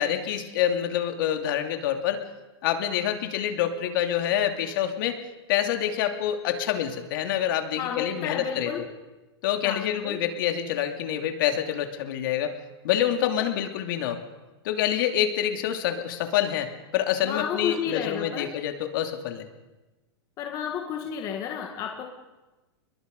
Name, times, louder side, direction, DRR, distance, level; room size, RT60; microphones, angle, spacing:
voice 1, 0.0-2.2 2.6-5.2 5.5-8.7 9.4-12.5 12.8-14.2 14.6-19.5, left 10 dB, 50° left, 6 dB, 2.8 m, -27 dB
voice 2, 7.8-8.9 9.6-10.2 17.2-18.5 20.4-22.1, left 8 dB, 25° left, 3 dB, 2.0 m, -31 dB
29.5 x 21.5 x 5.4 m, 1.1 s
supercardioid pair, 165°, 14 cm